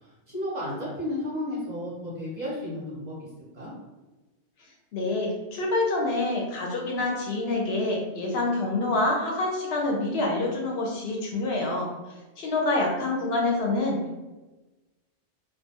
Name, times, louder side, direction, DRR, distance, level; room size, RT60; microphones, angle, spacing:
voice 1, 0.0-3.1 3.5-3.7, left 1 dB, 50° right, -6 dB, 0.6 m, -33 dB
voice 2, 4.9-11.9 12.4-14.2, left 2 dB, 70° left, 0 dB, 0.8 m, -26 dB
2.4 x 2.1 x 2.7 m, 1.1 s
omnidirectional pair, 1.2 m